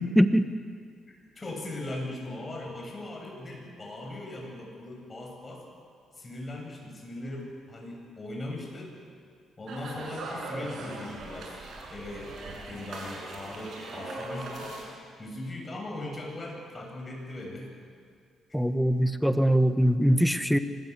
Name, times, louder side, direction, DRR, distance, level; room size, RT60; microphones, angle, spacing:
voice 1, 0.1-0.5 18.5-20.6, equal, ahead, 9 dB, 1.3 m, -22 dB
voice 2, 1.1-5.6 6.2-9.0 9.6-11.6 11.9-14.8 15.2-17.7, left 1 dB, 25° left, 0 dB, 7.7 m, -39 dB
sound 1, 9.7-14.8, right 2 dB, 65° right, 7.3 m, -39 dB
25.0 x 20.0 x 8.3 m, 2.1 s
cardioid pair, 90°, 0 cm